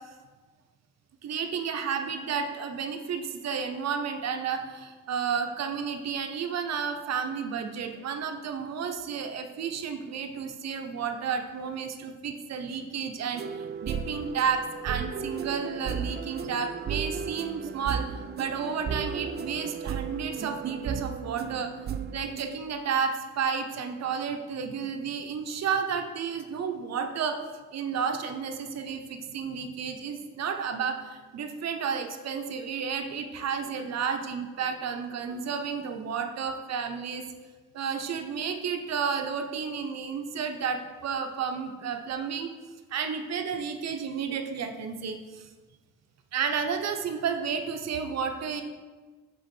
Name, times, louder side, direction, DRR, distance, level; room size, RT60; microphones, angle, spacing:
voice 1, 1.2-18.1 18.4-21.7 22.1-27.4 27.7-37.2 37.7-42.5 42.9-45.5 46.3-48.6, right 6 dB, 60° right, 6 dB, 0.8 m, -32 dB
sound 1, 13.3-22.6, right 6 dB, 35° right, 0.4 m, -35 dB
8.0 x 3.7 x 4.4 m, 1.3 s
cardioid pair, 90°, 30 cm